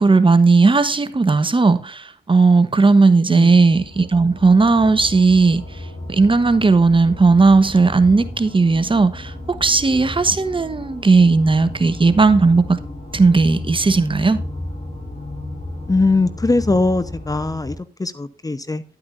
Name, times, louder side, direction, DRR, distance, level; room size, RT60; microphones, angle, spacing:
voice 1, 0.0-12.8 13.1-14.4, right 3 dB, 30° right, 1.2 m, -15 dB
sound 1, 3.4-17.8, left 1 dB, 45° left, 5.7 m, -33 dB
voice 2, 15.9-18.8, left 3 dB, 20° left, 0.8 m, -20 dB
11.5 x 8.8 x 2.6 m
supercardioid pair, 50°, 17 cm